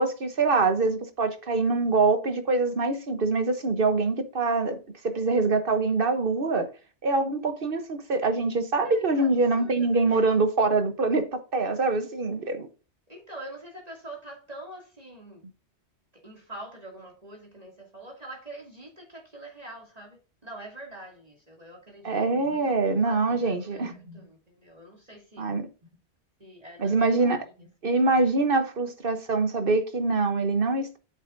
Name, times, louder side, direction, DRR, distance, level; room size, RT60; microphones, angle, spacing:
voice 1, 0.0-4.8 5.0-6.7 7.0-12.7 22.0-23.9 25.4-25.7 26.8-27.4 27.8-31.0, right 3 dB, 55° right, 1.2 m, -24 dB
voice 2, 8.8-9.3 9.6-10.3 13.1-15.4 16.1-25.4 26.4-27.7, right 1 dB, 35° right, 2.6 m, -45 dB
9.2 x 7.3 x 2.6 m
omnidirectional pair, 1.2 m